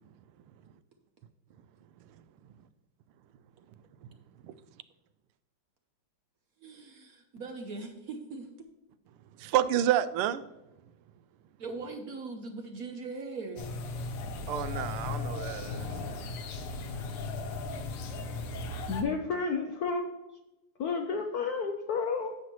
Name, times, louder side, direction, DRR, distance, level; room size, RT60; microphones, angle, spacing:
voice 1, 6.6-8.5 11.6-13.8, right 3 dB, 65° right, 0.9 m, -40 dB
voice 2, 9.4-10.4 14.5-16.2, right 11 dB, 85° right, 1.5 m, -29 dB
sound 1, 13.6-19.0, left 3 dB, 90° left, 1.8 m, -36 dB
voice 3, 18.9-20.2 20.8-22.4, left 4 dB, 70° left, 0.9 m, -31 dB
10.0 x 7.3 x 3.1 m
omnidirectional pair, 2.4 m